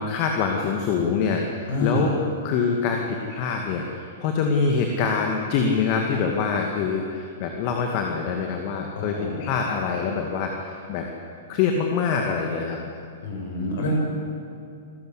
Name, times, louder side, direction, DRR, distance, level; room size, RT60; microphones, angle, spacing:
voice 1, 0.0-2.1 2.4-12.8, left 5 dB, 40° left, 2 dB, 2.3 m, -25 dB
voice 2, 1.7-2.1 9.0-9.5 13.2-14.0, left 2 dB, 55° left, 0 dB, 7.6 m, -27 dB
27.5 x 14.5 x 8.4 m, 2.5 s
figure-of-eight pair, 105°, 0 cm